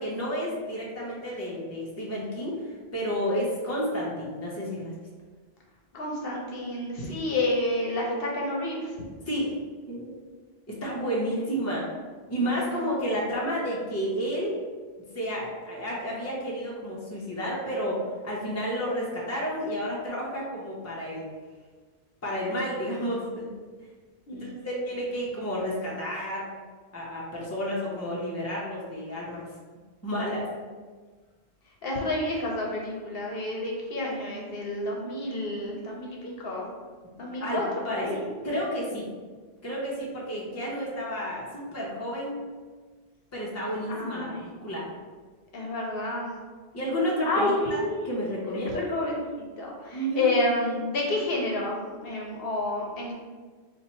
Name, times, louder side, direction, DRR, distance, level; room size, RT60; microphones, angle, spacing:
voice 1, 0.0-5.0 9.3-9.6 9.9-10.1 10.7-11.9 12.3-14.6 15.1-21.3 22.2-23.5 24.3-26.5 26.9-29.5 30.0-30.5 37.4-38.2 38.4-39.1 39.6-42.4 43.3-44.9 46.7-47.8 48.0-48.8 49.9-50.2, equal, 15° left, -5 dB, 0.6 m, -31 dB
voice 2, 5.9-8.9 11.2-11.3 24.3-24.6 31.8-36.7 37.2-37.6 37.9-38.2 43.9-44.4 45.5-46.3 47.3-48.1 48.5-53.1, left 2 dB, 70° left, -1 dB, 0.9 m, -29 dB
2.8 x 2.5 x 4.2 m, 1.5 s
omnidirectional pair, 1.1 m